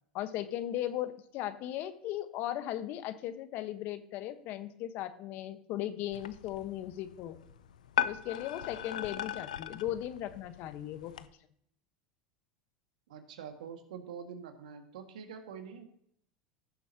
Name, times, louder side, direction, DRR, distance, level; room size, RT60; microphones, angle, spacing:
voice 1, 0.1-7.4 8.0-11.3, left 12 dB, 55° left, 11 dB, 1.1 m, -37 dB
sound 1, 6.1-11.3, left 10 dB, 90° left, 0.6 m, -38 dB
voice 2, 13.1-15.8, right 7 dB, 80° right, 5 dB, 1.8 m, -45 dB
16.5 x 7.0 x 2.8 m, 0.68 s
hypercardioid pair, 100°, 4 cm